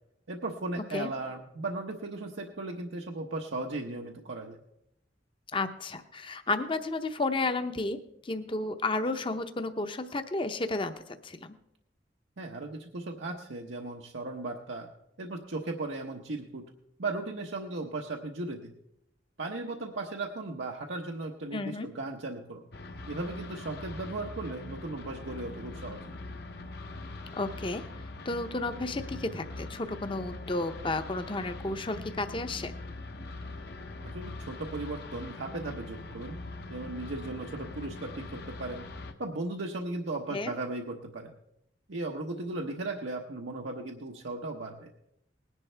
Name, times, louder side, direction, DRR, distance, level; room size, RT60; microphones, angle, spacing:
voice 1, 0.3-4.6 12.4-14.9 15.2-16.6 17.0-18.7 19.4-22.7 23.1-26.1 34.0-36.4 36.7-38.9 39.2-41.3 41.9-44.9, right 2 dB, 85° right, 1 dB, 1.0 m, -37 dB
voice 2, 5.5-8.0 8.2-10.9 11.2-11.5 21.5-21.9 27.4-27.8 28.2-32.7 40.3-40.5, left 2 dB, 30° left, 9 dB, 0.7 m, -32 dB
sound 1, 22.7-39.1, left 2 dB, 60° left, 0.9 m, -42 dB
19.0 x 11.0 x 3.4 m, 0.79 s
head